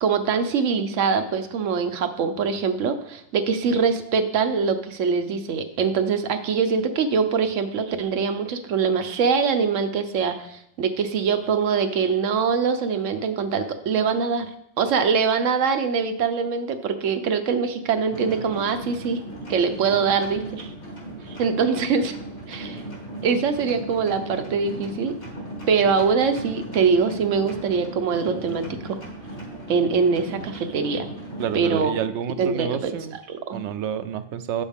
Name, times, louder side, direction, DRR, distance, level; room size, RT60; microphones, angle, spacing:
voice 1, 0.0-14.5 14.8-19.2 19.5-20.7 21.3-22.1 22.5-22.8 23.2-25.1 25.7-29.0 29.7-31.1 31.5-31.9 32.4-33.0 33.3-33.6, right 5 dB, 85° right, 8 dB, 1.1 m, -23 dB
sound 1, 18.1-31.6, right 1 dB, 60° left, 2.9 m, -37 dB
voice 2, 31.4-33.2 33.5-34.6, right 9 dB, 70° right, 11 dB, 0.9 m, -29 dB
9.0 x 7.2 x 3.6 m, 0.75 s
omnidirectional pair, 1.3 m